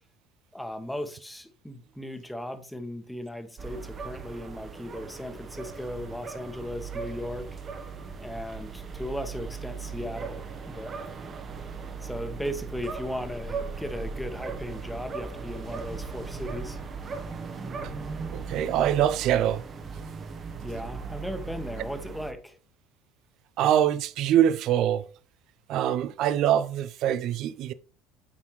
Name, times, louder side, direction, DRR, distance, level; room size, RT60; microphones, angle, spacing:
voice 1, 0.5-7.5 8.2-10.9 12.0-16.8 20.6-22.6, left 1 dB, 5° left, 1.0 m, -37 dB
sound 1, 3.6-22.3, right 5 dB, 35° right, 0.9 m, -38 dB
voice 2, 18.3-19.6 23.6-25.0 25.7-27.7, right 10 dB, 60° right, 0.3 m, -24 dB
7.1 x 4.3 x 3.1 m
hypercardioid pair, 75°, 0 cm